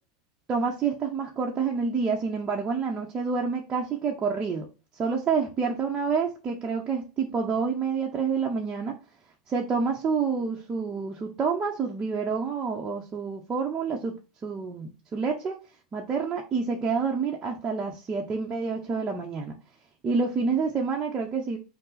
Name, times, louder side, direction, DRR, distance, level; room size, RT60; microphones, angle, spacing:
voice 1, 0.5-4.7 5.0-9.0 9.5-14.2 14.4-15.6 15.9-19.6 20.0-21.6, right 5 dB, 30° right, 0.7 m, -28 dB
5.3 x 2.0 x 3.9 m
hypercardioid pair, 115°, 2 cm